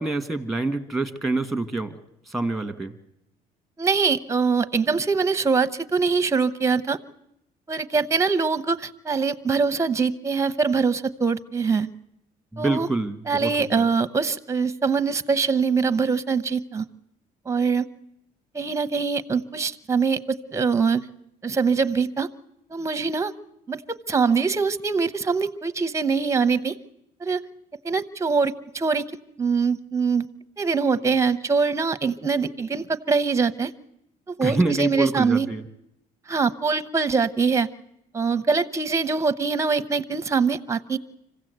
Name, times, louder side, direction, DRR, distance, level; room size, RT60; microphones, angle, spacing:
voice 1, 0.0-2.0 2.3-2.9 12.5-13.9 34.4-35.6, right 2 dB, ahead, 8 dB, 1.7 m, -26 dB
voice 2, 3.8-7.0 7.7-11.9 12.6-12.9 13.3-16.8 17.5-17.9 18.5-21.1 21.4-22.3 22.7-23.3 23.7-26.8 27.2-27.4 27.8-29.1 29.4-30.3 30.6-33.7 34.3-35.5 36.3-37.7 38.1-41.0, right 5 dB, 15° right, 14 dB, 0.9 m, -23 dB
25.5 x 16.0 x 8.1 m, 0.80 s
cardioid pair, 110°, 17 cm